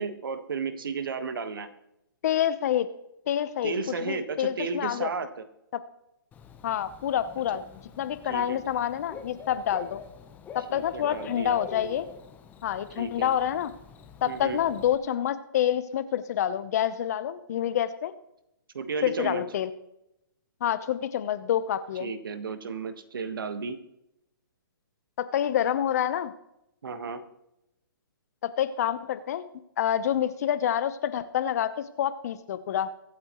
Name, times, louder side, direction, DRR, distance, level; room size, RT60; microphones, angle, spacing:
voice 1, 0.0-1.7 3.6-5.5 7.5-7.6 8.2-8.6 10.7-11.6 13.0-13.3 14.2-14.6 18.7-19.4 22.0-23.8 26.8-27.2, right 5 dB, 75° right, 10 dB, 1.5 m, -33 dB
voice 2, 2.2-2.9 3.3-3.7 4.0-5.1 6.6-7.6 8.0-10.0 10.5-12.0 12.6-13.7 14.2-18.1 19.0-19.7 20.6-22.1 25.2-26.3 28.4-29.5 29.8-32.9, left 10 dB, 45° left, 13 dB, 0.9 m, -27 dB
Bird / Cricket, 6.3-14.9, left 7 dB, 15° left, 0.9 m, -46 dB
23.5 x 8.6 x 3.1 m, 0.85 s
hypercardioid pair, 150°, 12 cm